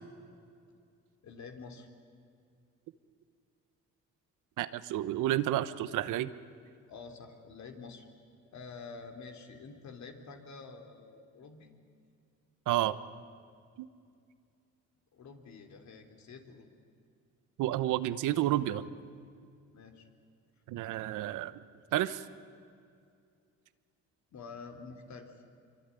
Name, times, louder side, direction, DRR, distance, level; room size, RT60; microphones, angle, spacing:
voice 1, 1.2-1.9 6.9-8.1 8.5-11.7 15.1-16.7 19.7-20.1 24.3-25.3, left 4 dB, 65° left, 5 dB, 3.5 m, -48 dB
voice 2, 4.6-6.3 12.7-13.0 13.8-13.9 17.6-18.8 20.7-21.6 21.9-22.2, right 13 dB, 90° right, 14 dB, 1.0 m, -30 dB
25.5 x 23.5 x 9.8 m, 2.3 s
cardioid pair, 90°, 30 cm